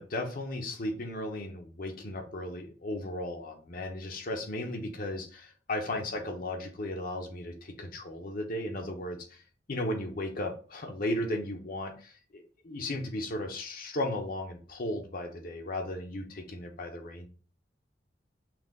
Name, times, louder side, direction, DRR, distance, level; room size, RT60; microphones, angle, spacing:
voice 1, 0.0-9.2 9.7-17.3, left 1 dB, 55° left, 3 dB, 0.8 m, -35 dB
5.9 x 2.4 x 3.7 m, 0.40 s
head